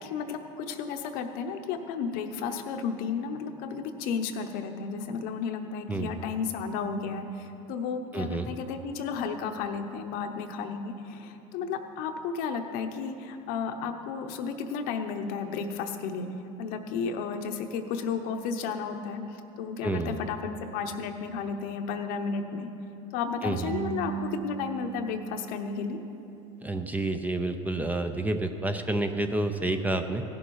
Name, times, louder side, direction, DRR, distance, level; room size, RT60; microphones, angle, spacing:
voice 1, 0.0-16.3 16.6-22.7 23.1-26.0, left 5 dB, 65° left, 6 dB, 0.9 m, -33 dB
voice 2, 5.9-6.2 8.1-8.5 19.8-20.2 23.4-23.7 26.6-30.2, right 2 dB, 10° right, 7 dB, 0.6 m, -29 dB
Marimba xylophone / Wood, 23.7-26.4, right 8 dB, 80° right, 1.3 m, -38 dB
16.0 x 7.1 x 4.8 m, 2.9 s
supercardioid pair, 110°, 16 cm